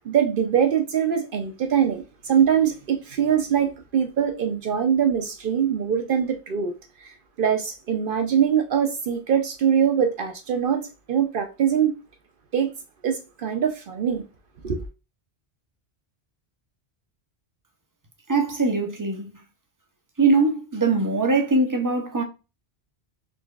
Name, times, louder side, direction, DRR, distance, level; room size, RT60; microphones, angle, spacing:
voice 1, 0.1-6.7 7.4-11.9 12.5-12.7 13.0-14.2 14.6-14.9, right 8 dB, 60° right, 0.7 m, -23 dB
voice 2, 18.3-19.3 20.2-22.2, right 3 dB, 30° right, 0.4 m, -21 dB
3.9 x 2.9 x 2.3 m
omnidirectional pair, 1.1 m